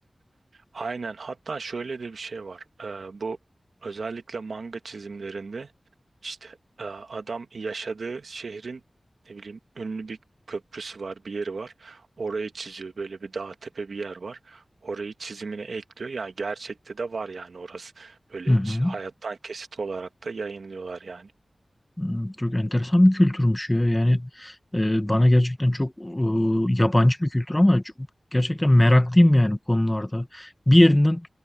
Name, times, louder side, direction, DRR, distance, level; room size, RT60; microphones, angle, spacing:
voice 1, 0.5-3.4 3.8-5.7 6.2-8.8 9.2-10.2 10.5-21.3, right 4 dB, 85° right, 1.6 m, -35 dB
voice 2, 18.5-18.9 22.0-27.8 28.3-31.3, left 1 dB, 15° left, 1.1 m, -20 dB
wide cardioid pair, 80°, 0 cm